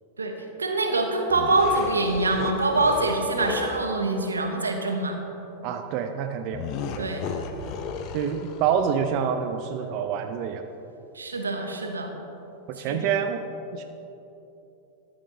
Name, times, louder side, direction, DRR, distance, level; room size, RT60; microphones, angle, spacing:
voice 1, 0.2-5.2 7.0-7.2 11.1-12.1 12.8-13.0, right 2 dB, 90° right, 3 dB, 1.0 m, -25 dB
sound 1, 1.3-3.9 6.5-8.8, left 5 dB, 45° left, 0.7 m, -34 dB
voice 2, 5.6-6.7 7.0-7.1 8.1-10.7 12.7-13.4 13.7-13.8, right 7 dB, 50° right, 6 dB, 0.5 m, -27 dB
13.0 x 5.9 x 3.9 m, 3.0 s
hypercardioid pair, 95°, 0 cm